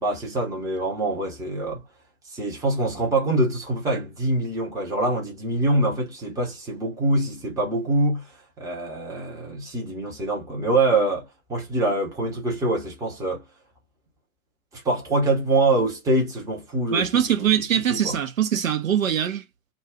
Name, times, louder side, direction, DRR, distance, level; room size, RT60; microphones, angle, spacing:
voice 1, 0.0-1.8 2.2-8.3 8.6-13.4 14.7-17.5 17.9-18.2, right 2 dB, 5° right, 0.9 m, -24 dB
voice 2, 16.9-19.4, right 9 dB, 65° right, 1.0 m, -22 dB
2.5 x 2.2 x 3.5 m
figure-of-eight pair, 115°, 44 cm